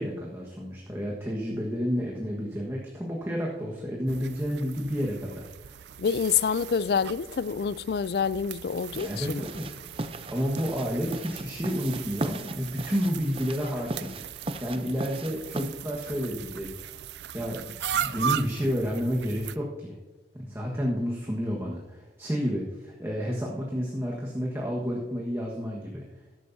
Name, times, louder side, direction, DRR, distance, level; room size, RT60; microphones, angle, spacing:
voice 1, 0.0-5.8 9.0-9.7 10.3-16.7 17.3-17.6 17.9-20.0 20.3-26.0, equal, 15° right, 1.4 m, -30 dB
sound 1, 4.1-19.6, right 9 dB, 80° right, 0.4 m, -38 dB
voice 2, 6.0-9.4, left 6 dB, 65° left, 0.3 m, -27 dB
sound 2, 8.9-15.7, right 2 dB, 30° right, 0.6 m, -38 dB
14.0 x 11.0 x 2.7 m
head